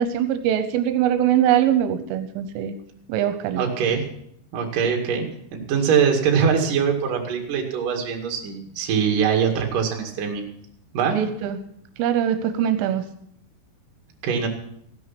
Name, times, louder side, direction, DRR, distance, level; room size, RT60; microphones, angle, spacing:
voice 1, 0.0-2.8 3.1-3.6 11.1-11.6 12.0-13.0, right 10 dB, 85° right, 9 dB, 3.3 m, -22 dB
voice 2, 3.5-4.1 4.5-5.2 5.5-10.4 10.9-11.2 14.2-14.5, right 7 dB, 50° right, 1 dB, 3.2 m, -22 dB
16.0 x 11.0 x 5.9 m, 0.70 s
omnidirectional pair, 5.7 m